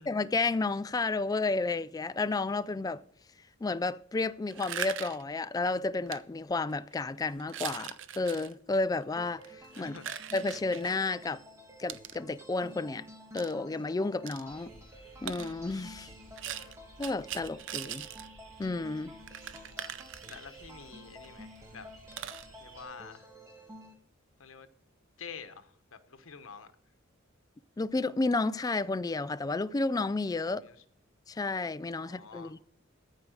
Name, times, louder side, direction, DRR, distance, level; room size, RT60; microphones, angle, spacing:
voice 1, 0.1-3.0 3.6-9.9 10.3-11.4 11.8-13.0 13.3-14.7 15.2-16.1 17.0-18.1 18.6-19.1 27.8-30.6 31.3-32.6, left 3 dB, 20° left, 0.3 m, -31 dB
sound 1, 4.5-5.3 6.1-6.2 6.7-6.9 7.4-8.5 9.3-11.0 11.9-12.2 13.4-13.5 14.3-14.4 15.3-15.5 16.4-18.3 18.6-18.7 18.9-19.0 19.3-20.7 21.2-21.3 21.6-21.7 22.1-22.5, right 10 dB, 65° right, 0.6 m, -40 dB
sound 2, 9.2-23.9, equal, 15° right, 1.5 m, -51 dB
voice 2, 9.8-10.2 16.1-16.8 19.6-19.9 20.3-21.9 22.6-23.3 24.4-24.7 25.2-26.7 30.5-30.8 32.0-32.6, left 5 dB, 85° left, 1.0 m, -48 dB
sound 3, 14.4-22.8, right 1 dB, 80° right, 2.8 m, -56 dB
14.0 x 4.8 x 6.5 m
head